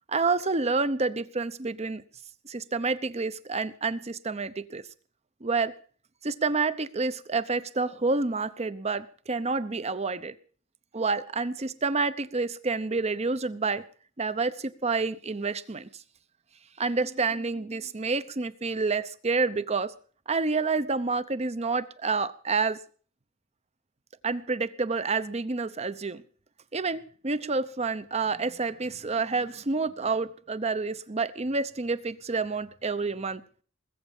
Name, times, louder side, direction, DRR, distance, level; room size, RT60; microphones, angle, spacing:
voice 1, 0.1-2.0 2.4-4.8 5.4-5.7 6.2-10.3 10.9-13.8 14.2-15.9 16.8-19.9 20.3-22.8 24.2-26.2 26.7-33.4, right 4 dB, 35° right, 15 dB, 0.8 m, -28 dB
20.5 x 8.2 x 7.1 m, 0.43 s
head